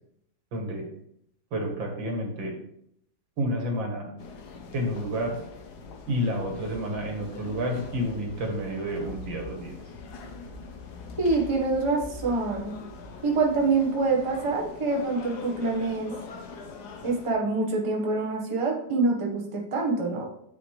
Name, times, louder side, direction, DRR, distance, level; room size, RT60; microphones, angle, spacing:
voice 1, 0.5-0.8 1.5-2.5 3.4-4.1 4.7-5.4 6.1-9.8, equal, 75° right, 1 dB, 2.2 m, -30 dB
sound 1, 4.2-17.3, left 4 dB, 60° left, 1.4 m, -43 dB
voice 2, 11.2-12.7 13.2-16.1 17.0-20.3, right 3 dB, 20° right, -1 dB, 1.1 m, -26 dB
8.7 x 5.0 x 3.2 m, 0.71 s
omnidirectional pair, 2.1 m